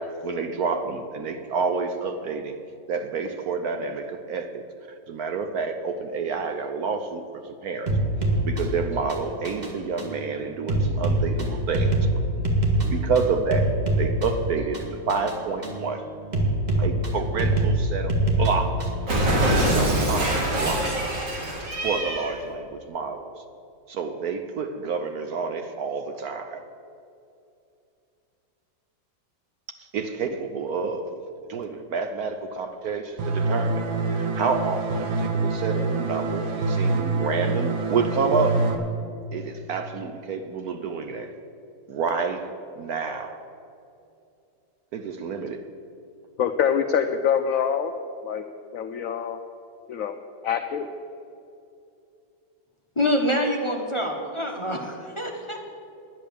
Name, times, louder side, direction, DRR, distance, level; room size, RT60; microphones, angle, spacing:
voice 1, 0.0-2.6 2.9-4.6 5.1-7.9 8.4-11.9 12.8-16.0 16.8-18.9 19.3-20.9 21.8-23.3 23.9-26.6 29.8-31.1 31.5-38.6 39.3-41.3 41.9-42.5 42.8-43.4 44.9-45.6, right 5 dB, 65° right, 7 dB, 1.0 m, -29 dB
sound 1, 7.9-19.1, right 1 dB, 25° right, 1.5 m, -25 dB
Cat, 19.1-22.4, right 1 dB, 45° right, 2.1 m, -24 dB
sound 2, 33.2-38.7, right 3 dB, 85° right, 1.8 m, -26 dB
voice 2, 46.4-47.9 48.2-48.4 48.7-49.4 49.9-50.2 50.4-50.9, left 8 dB, 80° left, 7 dB, 0.7 m, -25 dB
voice 3, 53.0-55.6, left 1 dB, 25° left, 0 dB, 0.7 m, -26 dB
10.0 x 10.0 x 6.9 m, 2.6 s
omnidirectional pair, 2.0 m